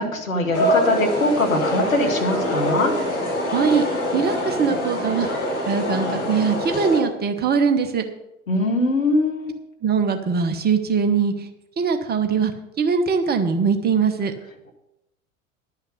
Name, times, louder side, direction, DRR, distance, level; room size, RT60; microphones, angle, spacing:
voice 1, 0.0-2.9 8.5-9.5, left 2 dB, 80° left, 2 dB, 1.9 m, -22 dB
sound 1, 0.5-7.0, left 1 dB, 60° left, 4.7 m, -24 dB
voice 2, 3.5-3.8 4.1-5.3 5.7-8.0 9.8-11.5 11.8-12.5 12.8-14.3, right 6 dB, 25° right, 7 dB, 1.1 m, -21 dB
11.0 x 5.8 x 8.1 m, 0.89 s
figure-of-eight pair, 80°, 40 cm